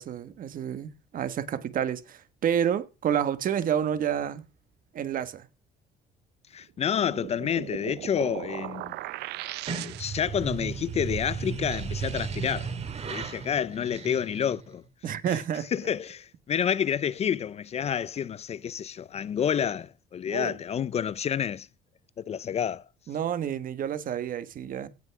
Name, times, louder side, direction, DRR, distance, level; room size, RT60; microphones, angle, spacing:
voice 1, 0.0-4.4 4.9-5.5 15.0-15.7 20.3-20.5 23.1-24.9, right 9 dB, 55° right, 1.5 m, -29 dB
voice 2, 6.5-9.0 9.8-12.7 13.0-14.8 15.3-15.4 15.7-21.7 22.2-22.9, left 8 dB, 40° left, 0.5 m, -29 dB
sound 1, 6.8-10.4, right 16 dB, 80° right, 0.6 m, -38 dB
sound 2, 9.5-14.7, right 6 dB, 40° right, 2.2 m, -35 dB
17.0 x 5.8 x 4.7 m
cardioid pair, 110°, 17 cm